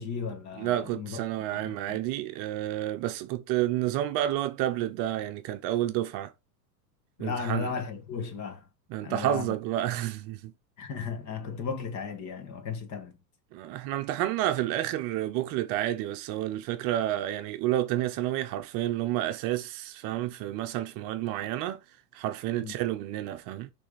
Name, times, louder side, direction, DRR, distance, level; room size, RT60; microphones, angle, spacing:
voice 1, 0.0-1.2 1.5-2.0 7.2-8.7 9.0-9.5 10.8-13.2 22.6-22.7, left 6 dB, 35° left, 1.7 m, -35 dB
voice 2, 0.6-6.3 7.2-7.7 8.9-10.5 13.5-21.8 22.1-23.7, right 13 dB, 40° right, 0.8 m, -30 dB
6.3 x 3.5 x 5.1 m
hypercardioid pair, 115°, 49 cm